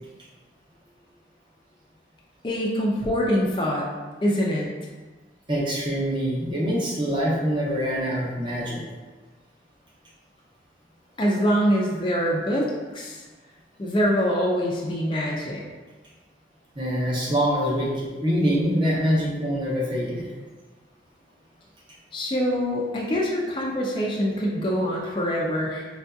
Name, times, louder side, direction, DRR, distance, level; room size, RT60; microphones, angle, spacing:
voice 1, 2.4-3.9 4.2-4.7 11.2-13.2 13.8-15.6 22.1-25.9, equal, 25° left, -3 dB, 0.4 m, -24 dB
voice 2, 5.5-8.8 16.8-20.3, equal, 25° right, -5 dB, 0.7 m, -24 dB
4.5 x 2.6 x 2.2 m, 1.3 s
head